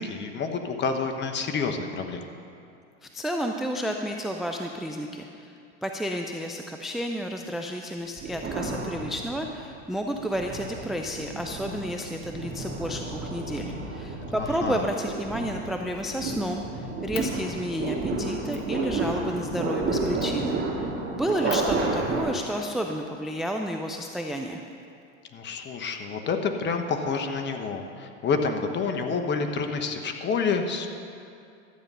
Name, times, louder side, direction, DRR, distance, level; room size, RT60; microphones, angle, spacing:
voice 1, 0.0-2.3 14.3-14.8 21.4-21.6 25.3-30.9, left 5 dB, 30° left, 6 dB, 1.1 m, -28 dB
voice 2, 3.0-5.6 5.8-20.6 21.1-24.6, equal, ahead, 3 dB, 0.5 m, -31 dB
sound 1, 8.2-9.6 10.1-22.2, right 3 dB, 30° right, 2.5 m, -31 dB
Fire, 15.0-15.2 15.6-16.5 17.1-17.3 17.9-18.0 18.5-18.7 20.2-20.5 21.0-21.1 21.5-23.3 24.3-25.3, left 8 dB, 75° left, 1.5 m, -44 dB
13.0 x 8.8 x 5.5 m, 2.5 s
hypercardioid pair, 105°, 37 cm